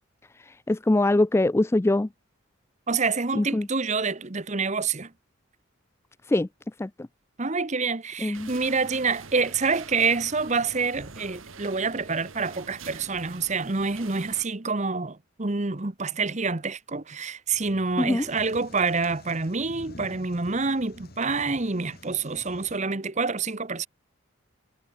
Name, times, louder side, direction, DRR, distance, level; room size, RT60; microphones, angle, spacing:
voice 1, 0.5-2.1 3.3-3.7 6.3-6.5 6.8-7.1 8.2-8.5 18.0-18.3, left 2 dB, 15° left, 0.3 m, -23 dB
voice 2, 2.9-5.1 7.4-23.9, right 4 dB, 35° right, 1.1 m, -27 dB
sound 1, 8.3-14.5, right 5 dB, 75° right, 1.7 m, -44 dB
sound 2, 17.5-22.8, left 1 dB, 50° left, 2.5 m, -49 dB
head